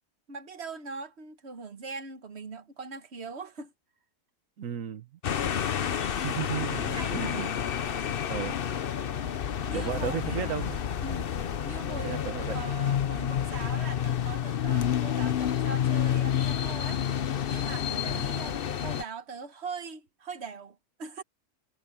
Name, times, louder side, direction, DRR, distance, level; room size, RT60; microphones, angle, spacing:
voice 1, 0.3-3.7 5.6-6.1 6.7-7.5 9.6-10.6 11.0-11.3 11.6-12.2 12.5-17.0 17.5-21.2, right 4 dB, 55° right, 1.7 m, -41 dB
voice 2, 4.6-5.1 6.1-7.5 8.3-8.6 9.7-11.1 12.0-12.6 18.0-18.3, right 9 dB, 85° right, 1.4 m, -35 dB
sound 1, 5.2-19.0, left 9 dB, 50° left, 0.9 m, -29 dB
omnidirectional pair, 1.3 m